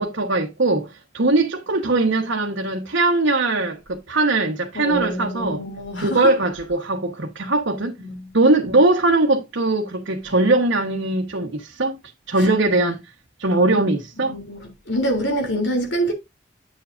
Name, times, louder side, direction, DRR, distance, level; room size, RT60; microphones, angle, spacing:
voice 1, 0.0-5.6 6.0-8.0 8.3-12.0 12.3-13.0 13.4-14.4, right 2 dB, 75° right, 1.2 m, -20 dB
voice 2, 4.8-6.3 8.0-8.3 14.3-16.1, right 1 dB, 70° left, 3.0 m, -25 dB
9.4 x 7.5 x 2.5 m
head